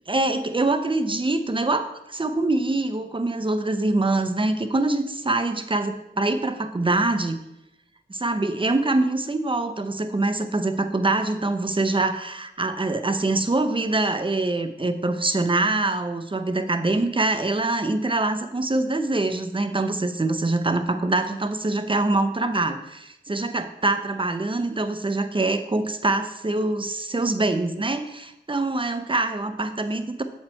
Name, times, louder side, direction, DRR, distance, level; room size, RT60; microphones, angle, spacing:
voice 1, 0.1-7.4 8.1-30.2, right 2 dB, 25° right, 9 dB, 0.5 m, -24 dB
7.4 x 4.4 x 4.3 m, 0.90 s
wide cardioid pair, 50°, 19 cm